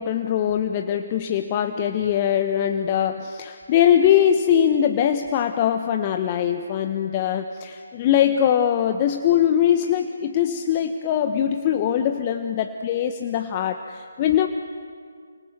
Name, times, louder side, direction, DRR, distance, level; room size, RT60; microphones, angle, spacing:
voice 1, 0.0-14.5, left 9 dB, 25° left, 6 dB, 1.2 m, -22 dB
29.5 x 25.5 x 7.0 m, 2.1 s
figure-of-eight pair, 145°, 0 cm